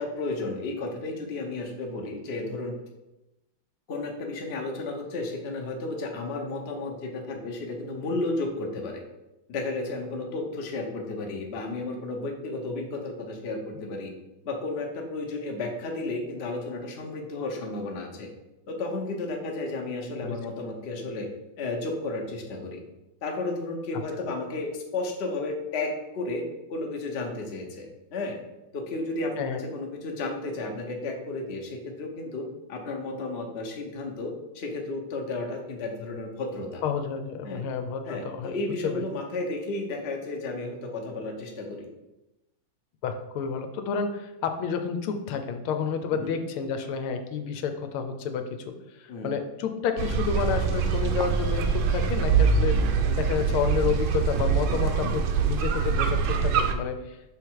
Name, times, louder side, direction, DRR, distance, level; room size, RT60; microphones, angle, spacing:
voice 1, 0.0-2.8 3.9-9.0 9.5-14.1 14.4-18.3 18.7-21.3 21.6-22.8 23.2-26.4 26.7-28.4 28.7-36.8 37.4-37.6 38.0-41.9 46.1-46.3 49.1-49.3 52.8-53.2, left 2 dB, 50° left, 1 dB, 0.8 m, -33 dB
voice 2, 36.8-38.6 38.8-39.0 43.0-52.8 53.2-57.2, left 6 dB, 85° left, 7 dB, 1.5 m, -30 dB
sound 1, 50.0-56.7, right 6 dB, 75° right, 1.4 m, -24 dB
6.3 x 3.6 x 4.6 m, 0.97 s
omnidirectional pair, 2.3 m